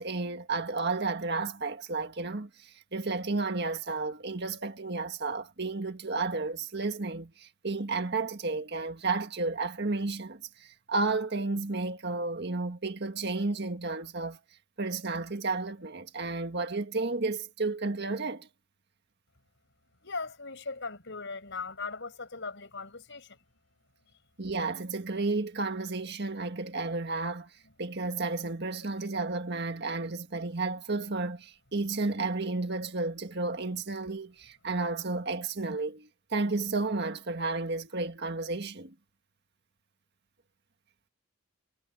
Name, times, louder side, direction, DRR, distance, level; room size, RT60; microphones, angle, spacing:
voice 1, 0.0-14.4 14.8-18.5 24.4-27.5 27.8-38.9, right 3 dB, 50° right, 1.8 m, -32 dB
voice 2, 20.0-23.4, left 4 dB, 55° left, 6.2 m, -39 dB
head